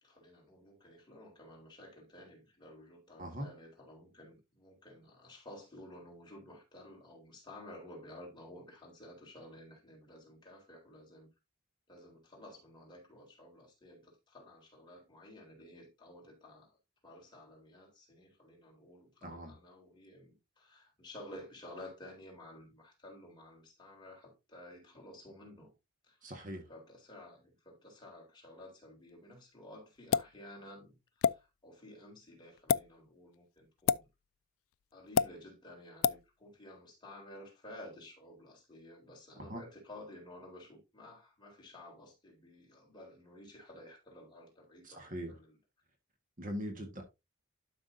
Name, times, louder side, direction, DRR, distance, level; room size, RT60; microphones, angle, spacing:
voice 1, 0.0-11.3 11.9-16.8 17.0-25.7 26.0-26.3 26.7-34.1 34.9-45.6, left 1 dB, 20° left, 3.7 m, -53 dB
voice 2, 19.2-19.5 26.2-26.6 39.4-39.6 44.8-45.3 46.4-47.0, equal, 40° right, 1.5 m, -41 dB
sound 1, 30.1-30.3 31.2-31.4 32.6-32.8 33.9-34.0 35.2-35.3 36.0-36.2, left 7 dB, 75° left, 0.3 m, -27 dB
12.0 x 5.9 x 2.6 m
head